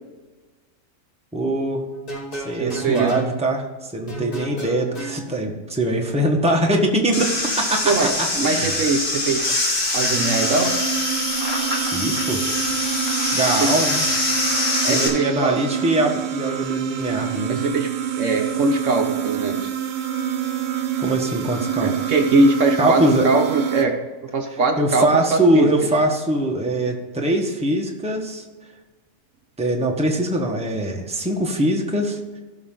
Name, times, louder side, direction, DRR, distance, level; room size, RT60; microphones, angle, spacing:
voice 1, 1.3-1.8 2.3-3.6 3.9-8.8 11.3-11.4 11.8-12.4 13.3-14.0 14.9-17.6 21.0-22.1 22.8-23.3 24.8-28.4 29.6-32.2, right 1 dB, 5° right, 0 dB, 1.2 m, -22 dB
sound 1, 1.9-3.3 4.1-5.2, right 1 dB, 90° left, 3.8 m, -32 dB
voice 2, 2.6-3.3 7.8-9.4 9.9-10.7 13.6-13.7 14.8-15.6 17.5-17.9 18.2-19.7 21.8-23.9 24.3-25.9, right 3 dB, 60° right, 4 dB, 1.2 m, -21 dB
sound 2, 7.1-15.1, left 2 dB, 55° left, 2.5 m, -23 dB
sound 3, 10.1-23.8, right 10 dB, 85° right, 1.3 m, -27 dB
16.0 x 6.1 x 3.8 m, 1.3 s
omnidirectional pair, 1.6 m